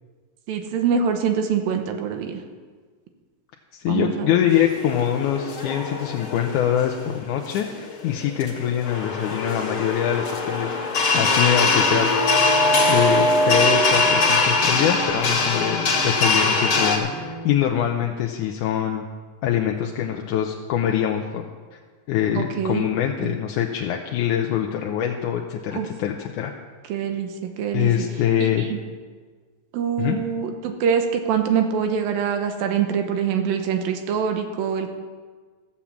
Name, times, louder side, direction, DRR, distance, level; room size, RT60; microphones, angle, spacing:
voice 1, 0.5-2.4 3.9-4.4 22.3-22.9 25.7-25.9 26.9-27.3 27.6-27.9 28.4-28.8 29.7-34.9, right 7 dB, 80° right, 5 dB, 2.7 m, -24 dB
voice 2, 3.7-10.8 11.1-12.1 12.9-19.0 19.4-21.4 21.7-21.8 22.1-26.5 27.7-28.7 30.0-30.2, left 10 dB, 75° left, 2 dB, 1.9 m, -24 dB
sound 1, 4.5-17.0, left 3 dB, 45° left, 2.0 m, -22 dB
sound 2, 11.1-17.5, right 4 dB, 55° right, 1.5 m, -36 dB
15.0 x 7.1 x 7.3 m, 1.5 s
omnidirectional pair, 4.2 m